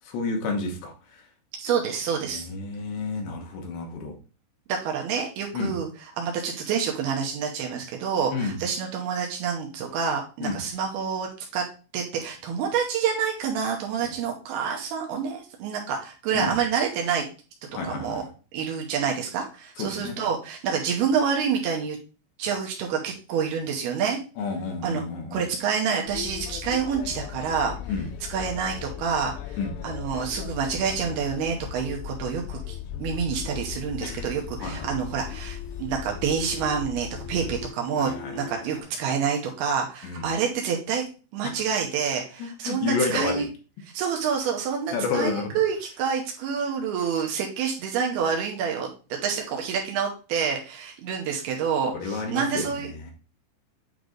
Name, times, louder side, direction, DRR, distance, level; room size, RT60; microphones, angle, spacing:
voice 1, 0.1-1.2 2.3-4.1 5.5-5.8 8.3-8.6 10.4-10.6 14.0-14.1 16.3-16.5 17.7-18.3 19.8-20.2 24.4-25.4 27.9-28.1 29.6-29.7 34.6-35.0 37.9-38.8 40.0-40.3 41.4-41.5 42.4-43.5 44.9-45.6 51.9-53.1, left 4 dB, 70° left, 2 dB, 3.1 m, -30 dB
voice 2, 1.6-2.5 4.7-5.9 6.2-11.7 11.9-17.3 17.8-18.2 18.5-22.0 22.4-24.2 24.8-25.0 25.3-27.8 28.3-29.4 29.8-41.1 41.3-43.5 43.9-52.9, right 6 dB, 80° right, 1 dB, 2.4 m, -27 dB
sound 1, 26.1-37.7, left 10 dB, 90° left, 2.4 m, -37 dB
sound 2, 33.1-38.8, left 6 dB, 5° right, 0.7 m, -45 dB
9.2 x 3.3 x 3.8 m, 0.35 s
omnidirectional pair, 5.6 m